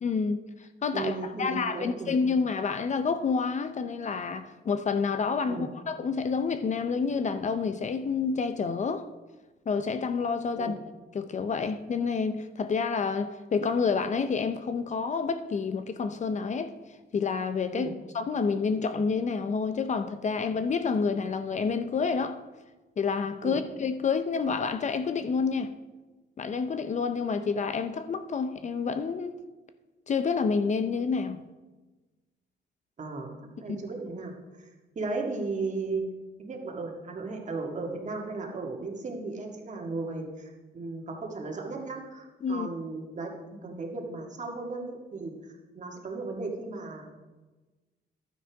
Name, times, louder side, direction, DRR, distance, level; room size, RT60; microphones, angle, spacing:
voice 1, 0.0-9.1 9.7-10.7 11.1-16.7 17.1-17.9 18.1-22.4 23.0-25.7 26.4-29.4 30.1-31.4 33.7-33.8 42.4-42.7, left 5 dB, 40° left, 10 dB, 0.6 m, -28 dB
voice 2, 0.9-2.2 5.5-5.7 10.6-10.7 17.7-17.9 23.4-23.6 33.0-34.7 35.0-36.0 36.4-47.1, right 3 dB, 40° right, 1 dB, 1.9 m, -35 dB
11.5 x 9.5 x 3.5 m, 1.2 s
cardioid pair, 110°, 19 cm